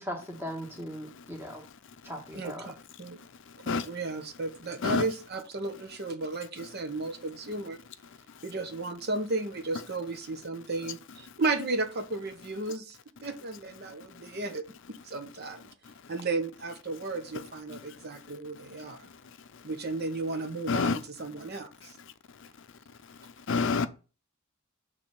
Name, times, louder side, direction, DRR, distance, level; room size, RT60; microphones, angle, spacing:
voice 1, 0.0-1.6 2.0-2.7, equal, 10° right, 1.5 m, -38 dB
voice 2, 2.3-3.2 3.6-7.8 8.4-15.7 16.1-19.1 19.6-21.9, right 3 dB, 50° right, 0.9 m, -34 dB
voice 3, 20.7-21.0 23.5-23.9, left 4 dB, 60° left, 0.5 m, -26 dB
6.9 x 3.3 x 5.3 m
head